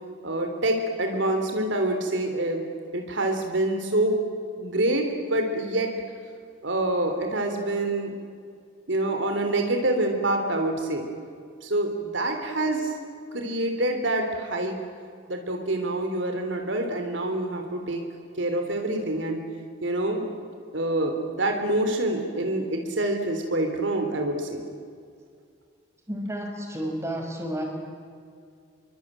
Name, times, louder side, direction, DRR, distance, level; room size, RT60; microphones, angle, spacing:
voice 1, 0.2-2.7 2.9-4.2 4.6-5.9 6.6-8.1 8.9-11.1 11.6-12.9 13.3-14.8 15.3-18.0 18.4-19.4 19.8-20.3 20.7-24.6, right 1 dB, 70° right, 4 dB, 3.5 m, -26 dB
voice 2, 26.1-27.6, equal, 15° right, 1 dB, 5.9 m, -31 dB
27.5 x 23.5 x 9.1 m, 2.2 s
head